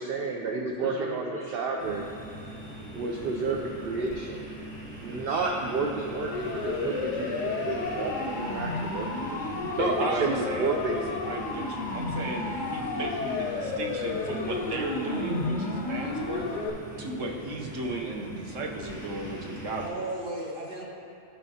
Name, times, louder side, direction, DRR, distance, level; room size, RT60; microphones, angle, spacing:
voice 1, 0.0-2.0 2.9-4.5 5.0-11.0, right 4 dB, 60° right, 0 dB, 0.7 m, -31 dB
voice 2, 0.8-1.6 19.4-20.8, right 1 dB, 45° right, -4 dB, 1.3 m, -37 dB
sound 1, 1.8-19.9, equal, 5° right, 1.6 m, -42 dB
Siren, 6.3-16.7, left 3 dB, 85° left, 1.1 m, -32 dB
voice 3, 9.7-16.5 17.0-20.0, right 2 dB, 90° right, 0 dB, 1.2 m, -34 dB
12.0 x 5.4 x 2.8 m, 2.8 s
omnidirectional pair, 1.3 m